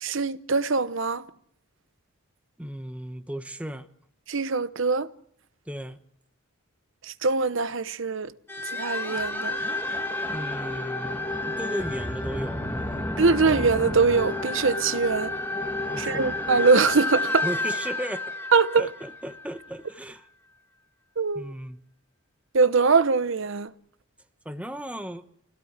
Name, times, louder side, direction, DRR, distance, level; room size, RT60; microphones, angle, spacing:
voice 1, 0.0-1.3 4.3-5.1 7.0-8.3 8.6-9.6 13.2-15.3 16.0-17.4 18.5-18.9 21.2-21.5 22.5-23.7, right 4 dB, 60° right, 0.9 m, -23 dB
voice 2, 2.6-3.9 5.7-6.0 10.3-13.2 15.9-16.3 17.4-18.2 18.8-20.2 21.3-21.8 24.4-25.2, equal, 5° right, 1.1 m, -35 dB
sound 1, 8.5-19.7, left 2 dB, 10° left, 1.8 m, -30 dB
25.0 x 17.5 x 8.1 m
head